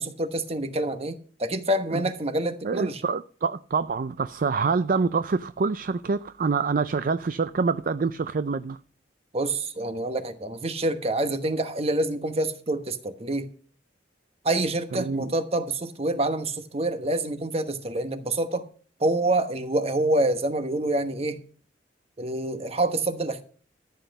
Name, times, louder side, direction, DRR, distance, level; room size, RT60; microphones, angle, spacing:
voice 1, 0.0-3.0 9.3-13.5 14.4-18.7 19.0-21.4 22.2-23.4, right 2 dB, 35° right, 1.2 m, -27 dB
voice 2, 2.6-8.8 14.9-15.3, right 4 dB, 50° right, 0.4 m, -26 dB
14.0 x 8.1 x 5.3 m
head